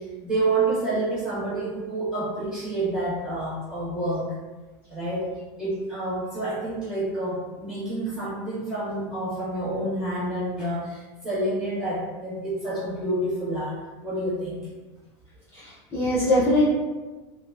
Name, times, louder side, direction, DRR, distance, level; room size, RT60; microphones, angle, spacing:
voice 1, 0.0-4.3 4.9-5.3 5.6-14.6, right 2 dB, 5° right, -12 dB, 1.1 m, -28 dB
voice 2, 15.5-16.7, left 1 dB, 15° left, -11 dB, 0.5 m, -22 dB
2.7 x 2.2 x 2.3 m, 1.2 s
supercardioid pair, 160°, 15 cm